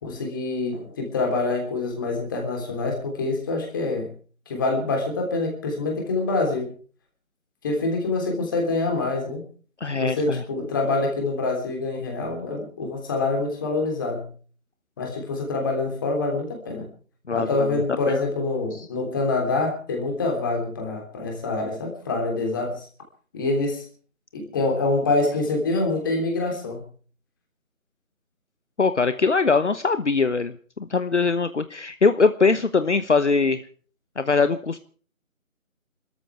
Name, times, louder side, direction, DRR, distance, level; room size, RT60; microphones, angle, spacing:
voice 1, 0.0-4.1 4.5-6.7 7.6-9.4 9.9-14.3 15.0-16.9 17.3-22.9 23.3-23.8 24.3-26.9, left 3 dB, 15° left, 1 dB, 3.3 m, -26 dB
voice 2, 9.8-10.4 17.3-18.2 18.7-18.9 28.8-33.6 34.2-34.8, left 4 dB, 55° left, 11 dB, 1.1 m, -22 dB
28.5 x 14.0 x 3.3 m, 0.42 s
figure-of-eight pair, 170°, 42 cm